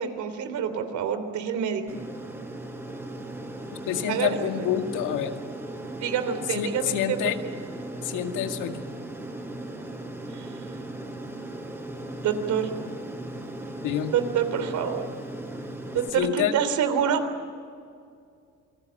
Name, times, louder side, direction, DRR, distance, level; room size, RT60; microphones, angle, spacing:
voice 1, 0.0-1.9 4.1-4.7 6.0-7.5 10.3-10.5 12.2-12.7 14.1-15.0 15.9-17.2, right 8 dB, 70° right, 9 dB, 3.3 m, -27 dB
Aircraft, 1.9-16.1, right 1 dB, 10° right, 4.5 m, -37 dB
voice 2, 3.9-5.4 6.5-7.4 8.0-8.8 13.8-14.1 16.1-16.5, left 10 dB, 80° left, 6 dB, 2.2 m, -27 dB
28.5 x 19.5 x 8.8 m, 2.3 s
cardioid pair, 115°, 30 cm